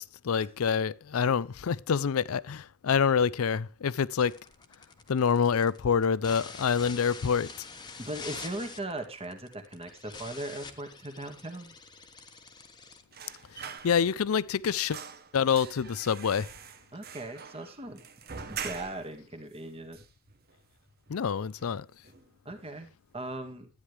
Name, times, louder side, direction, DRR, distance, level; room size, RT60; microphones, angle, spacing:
voice 1, 0.0-4.3 5.1-7.5 13.8-15.0 15.3-16.5 21.1-21.9, left 6 dB, 80° left, 0.5 m, -26 dB
sound 1, 4.2-13.8, left 4 dB, 20° left, 1.2 m, -46 dB
voice 2, 8.0-11.8 16.9-18.0 18.5-20.0 22.5-23.7, right 1 dB, 30° right, 1.8 m, -39 dB
sound 2, 13.1-14.4 14.6-19.2 19.5-19.6 19.9-20.7 21.1-21.3 21.6-22.3 22.6-22.8, right 6 dB, 50° right, 1.1 m, -44 dB
13.0 x 9.7 x 3.3 m
head